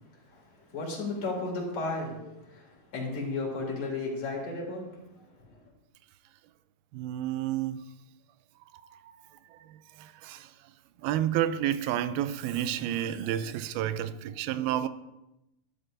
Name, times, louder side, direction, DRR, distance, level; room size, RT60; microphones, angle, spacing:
voice 1, 0.0-5.6, left 3 dB, 45° left, 3.1 m, -35 dB
voice 2, 6.9-7.9 8.8-9.2 9.5-10.6 11.0-14.9, right 11 dB, 85° right, 2.4 m, -31 dB
11.5 x 11.0 x 2.6 m
omnidirectional pair, 4.4 m